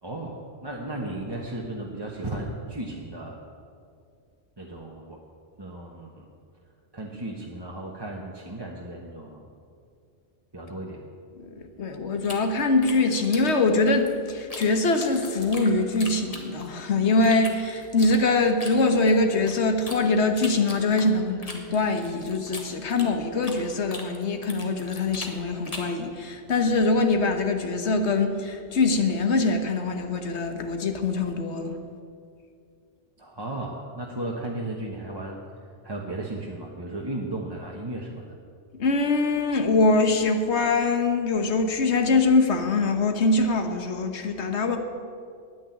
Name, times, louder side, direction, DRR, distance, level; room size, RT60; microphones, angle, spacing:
voice 1, 0.0-3.4 4.6-5.2 5.6-6.3 6.9-9.5 10.5-11.0 33.2-35.4 35.8-38.3, right 2 dB, 20° right, -2 dB, 1.1 m, -35 dB
voice 2, 11.4-31.8 38.8-44.8, left 3 dB, 70° left, 6 dB, 1.5 m, -23 dB
sound 1, 12.2-14.7 15.0-16.8 17.2-20.0 20.4-23.6 23.9-26.0, left 2 dB, 35° left, 1.6 m, -40 dB
10.0 x 9.4 x 9.2 m, 2.3 s
omnidirectional pair, 1.2 m